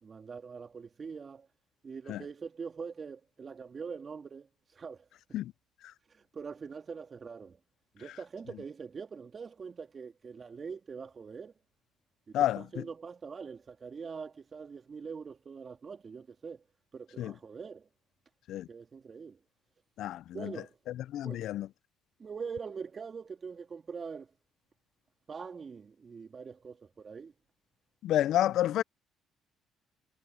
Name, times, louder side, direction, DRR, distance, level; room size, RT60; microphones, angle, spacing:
voice 1, 0.0-1.5 1.8-5.4 6.1-7.6 7.9-11.5 12.4-16.6 16.9-17.9 18.7-19.4 20.3-20.8 21.2-21.5 22.2-24.3 25.3-27.3, right 5 dB, 40° right, 2.6 m, -43 dB
voice 2, 21.1-21.7 28.0-28.8, left 12 dB, 70° left, 0.5 m, -28 dB
supercardioid pair, 70°, 0 cm